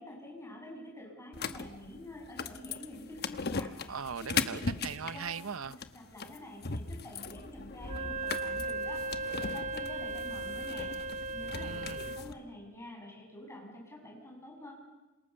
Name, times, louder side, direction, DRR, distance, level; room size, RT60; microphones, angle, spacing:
voice 1, 0.0-4.0 4.3-4.8 5.1-5.3 5.9-10.9 11.3-14.7, left 1 dB, 15° left, 7.9 m, -47 dB
sound 1, 1.3-12.3, left 4 dB, 50° left, 1.1 m, -39 dB
voice 2, 3.9-5.7 11.5-12.1, right 6 dB, 90° right, 0.8 m, -39 dB
Wind instrument woodwind instrument, 7.8-12.3, right 3 dB, 35° right, 1.0 m, -37 dB
27.5 x 27.0 x 6.9 m
head